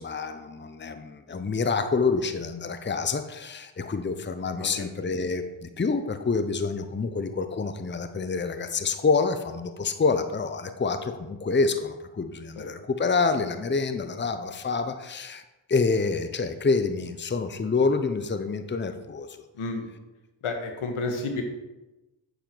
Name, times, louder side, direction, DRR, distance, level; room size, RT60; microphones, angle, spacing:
voice 1, 0.0-15.4 15.7-19.4, left 4 dB, 20° left, 9 dB, 0.8 m, -27 dB
voice 2, 4.5-4.9 12.5-12.7 19.5-19.9 20.4-21.4, left 3 dB, 85° left, 3 dB, 1.6 m, -31 dB
9.2 x 7.1 x 4.6 m, 1.0 s
cardioid pair, 60°, 49 cm